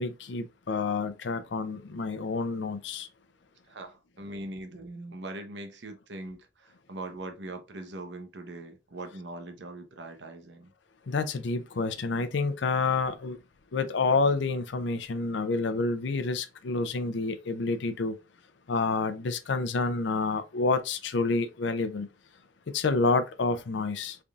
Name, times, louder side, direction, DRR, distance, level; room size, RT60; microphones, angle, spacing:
voice 1, 0.0-3.1 11.1-13.4 13.7-18.2 18.7-22.1 22.7-24.2, left 3 dB, 75° left, 0.5 m, -28 dB
voice 2, 3.7-10.7, right 2 dB, 70° right, 0.8 m, -41 dB
3.9 x 3.4 x 2.3 m
head